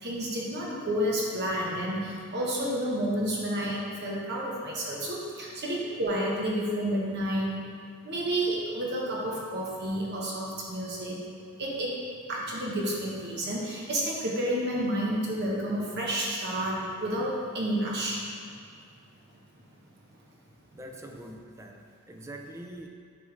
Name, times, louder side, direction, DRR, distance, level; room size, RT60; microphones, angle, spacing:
voice 1, 0.0-7.6 8.0-11.2 11.6-11.9 12.3-18.2, right 1 dB, 50° right, -4 dB, 1.1 m, -30 dB
voice 2, 20.7-22.9, right 1 dB, 15° right, 3 dB, 0.4 m, -44 dB
9.4 x 3.3 x 3.2 m, 2.3 s
head